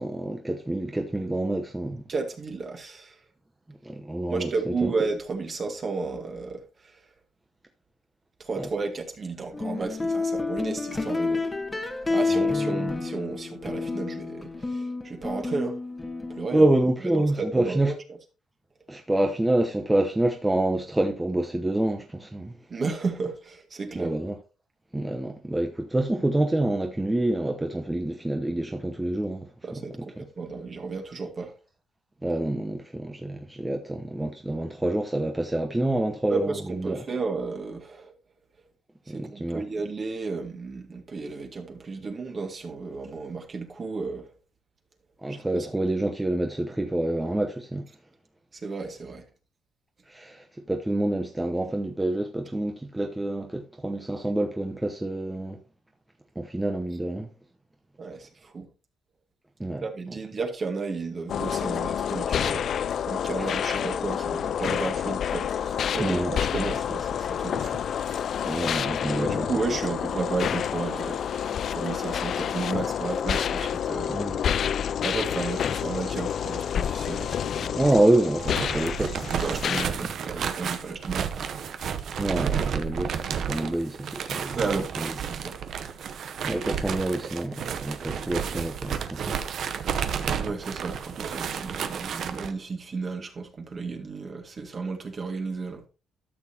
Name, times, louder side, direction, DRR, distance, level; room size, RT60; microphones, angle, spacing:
voice 1, 0.0-2.0 3.7-4.9 8.6-8.7 12.3-12.5 16.5-17.9 18.9-22.6 23.9-24.3 24.9-30.3 32.2-37.0 39.1-39.6 45.2-47.9 50.1-55.6 56.4-57.3 59.6-60.2 63.4-63.6 66.0-66.3 68.5-69.5 74.1-74.4 77.7-80.1 82.2-84.6 85.0-85.1 86.4-89.4, right 1 dB, 10° right, 0.9 m, -27 dB
voice 2, 2.1-3.2 4.3-7.0 8.4-11.4 12.1-15.8 16.3-16.7 17.1-17.9 22.7-24.2 29.6-31.6 36.3-38.1 39.1-44.3 45.3-45.9 48.5-49.2 58.0-58.7 59.8-62.7 63.0-68.2 69.2-74.2 75.0-77.8 79.3-81.5 84.6-85.6 90.3-95.9, right 4 dB, 40° right, 2.0 m, -33 dB
sound 1, 9.5-16.6, left 3 dB, 20° left, 1.3 m, -29 dB
sound 2, 61.3-79.9, left 8 dB, 60° left, 0.3 m, -28 dB
sound 3, 78.3-92.5, right 7 dB, 65° right, 0.8 m, -31 dB
12.0 x 6.8 x 2.8 m
cardioid pair, 90°, 0 cm